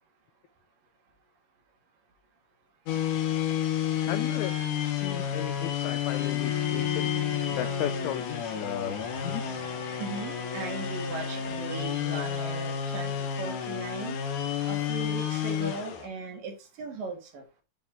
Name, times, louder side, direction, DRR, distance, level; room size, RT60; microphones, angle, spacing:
sound 1, 2.9-16.1, left 9 dB, 70° left, 2.6 m, -31 dB
voice 1, 4.1-4.5 4.8-9.6, left 13 dB, 90° left, 11 dB, 1.6 m, -36 dB
Bowed string instrument, 6.1-11.6, left 3 dB, 10° left, 1.8 m, -39 dB
voice 2, 10.0-13.1 13.4-14.3 14.7-17.4, right 4 dB, 75° right, 4 dB, 3.4 m, -38 dB
9.0 x 4.3 x 3.6 m, 0.29 s
omnidirectional pair, 4.0 m